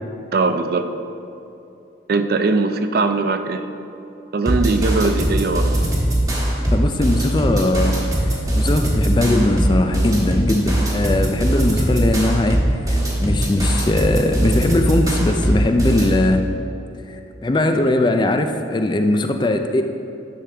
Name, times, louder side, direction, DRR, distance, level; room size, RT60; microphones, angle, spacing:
voice 1, 0.3-0.9 2.1-3.7 4.3-5.7, right 3 dB, 50° right, 8 dB, 0.4 m, -20 dB
sound 1, 4.5-16.2, right 1 dB, 20° right, 1.2 m, -20 dB
voice 2, 6.7-16.4 17.0-19.8, left 2 dB, 25° left, 6 dB, 0.3 m, -20 dB
10.0 x 6.3 x 3.4 m, 2.7 s
head